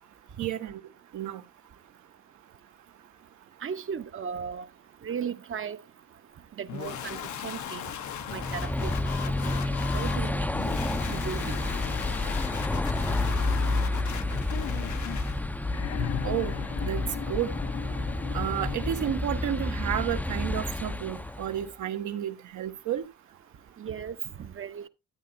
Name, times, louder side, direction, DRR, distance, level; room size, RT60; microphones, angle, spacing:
voice 1, 0.4-0.8 1.1-1.4 16.2-16.6 16.8-17.5 18.3-23.0, right 11 dB, 75° right, 1.3 m, -31 dB
voice 2, 3.6-4.7 5.0-5.8 6.6-7.9 8.3-10.5 11.1-11.6 23.8-24.9, right 7 dB, 45° right, 0.9 m, -37 dB
sound 1, 6.7-15.4, left 9 dB, 75° left, 1.0 m, -37 dB
sound 2, 8.2-21.7, left 2 dB, 5° left, 0.6 m, -30 dB
sound 3, 15.6-19.5 20.7-20.8, left 9 dB, 55° left, 0.7 m, -37 dB
12.5 x 8.8 x 2.7 m
cardioid pair, 90°, 30 cm